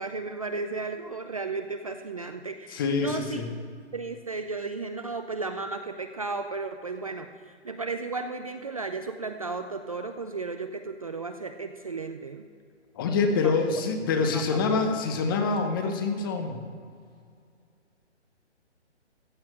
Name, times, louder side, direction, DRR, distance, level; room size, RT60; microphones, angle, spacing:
voice 1, 0.0-3.4 3.9-12.5 13.4-13.6 14.3-14.6, right 3 dB, 30° right, 6 dB, 0.4 m, -34 dB
voice 2, 2.7-3.5 13.0-16.6, left 4 dB, 20° left, 6 dB, 0.8 m, -26 dB
14.5 x 7.3 x 7.6 m, 2.3 s
hypercardioid pair, 150°, 35 cm